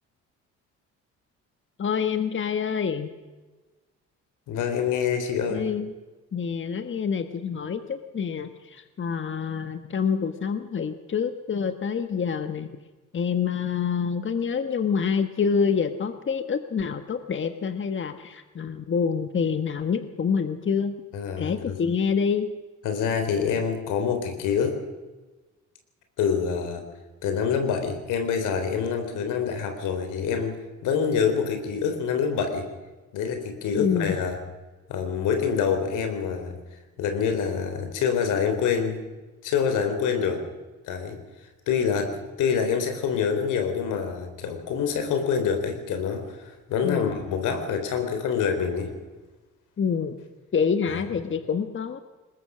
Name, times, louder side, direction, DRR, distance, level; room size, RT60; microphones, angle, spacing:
voice 1, 1.8-3.1 5.5-5.9 6.3-12.7 13.1-20.9 21.4-22.5 33.7-34.2 46.8-47.2 49.8-50.2 50.5-52.0, left 6 dB, 40° left, 9 dB, 1.5 m, -27 dB
voice 2, 4.5-5.6 21.1-21.8 22.8-24.8 26.2-26.8 27.2-30.6 30.8-32.7 33.1-34.4 34.9-39.0 39.4-40.4 40.9-41.2 41.7-42.1 42.4-48.9 50.9-51.0, left 6 dB, 90° left, 6 dB, 3.8 m, -26 dB
20.5 x 20.5 x 6.3 m, 1.2 s
cardioid pair, 90°, 30 cm